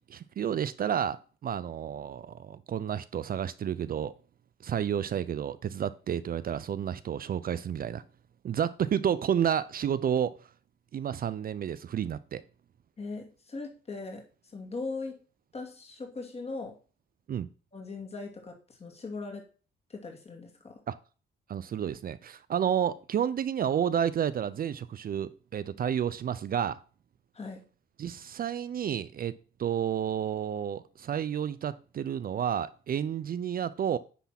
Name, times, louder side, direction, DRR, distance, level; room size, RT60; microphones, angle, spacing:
voice 1, 0.0-4.1 4.6-8.0 8.4-10.4 10.9-12.4 17.3-17.5 20.9-21.0 21.5-26.8 28.0-34.0, right 9 dB, 45° right, 0.5 m, -31 dB
voice 2, 13.0-14.2 14.5-15.2 15.5-16.8 17.7-19.5 19.9-20.8 27.3-27.6, left 3 dB, 30° left, 2.5 m, -39 dB
10.0 x 3.5 x 5.8 m
cardioid pair, 90°, 20 cm